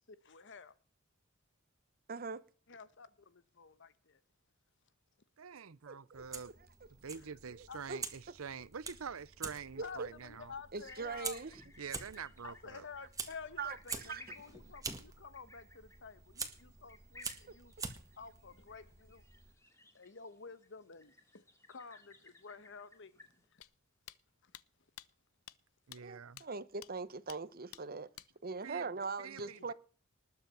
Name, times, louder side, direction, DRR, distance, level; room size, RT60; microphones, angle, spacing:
voice 1, 0.1-0.7 2.7-4.2 7.7-7.8 9.8-11.4 12.4-17.7 18.2-19.2 19.9-23.6 24.4-24.6 29.5-29.6, left 5 dB, 60° left, 1.1 m, -51 dB
voice 2, 2.1-2.4 5.9-6.5 7.5-8.0 9.8-10.1 10.7-11.5 13.6-13.8 14.0-14.2 26.0-28.1 28.4-29.7, right 4 dB, 45° right, 1.0 m, -41 dB
voice 3, 5.4-6.5 6.9-10.5 11.8-12.9 25.9-26.4 28.6-28.9 29.2-29.7, right 6 dB, 85° right, 0.7 m, -46 dB
Fire, 6.1-19.5, right 4 dB, 15° right, 1.7 m, -47 dB
sound 1, 10.8-23.5, left 2 dB, 15° left, 2.2 m, -59 dB
sound 2, 23.6-23.7 24.1-24.2 24.5-24.6 25.0-25.1 25.5-25.6 25.9-26.0 26.4-26.5 26.8-26.9 27.3-27.4 27.7-27.8 28.2-28.3, left 13 dB, 80° left, 0.6 m, -51 dB
19.5 x 7.3 x 6.8 m
head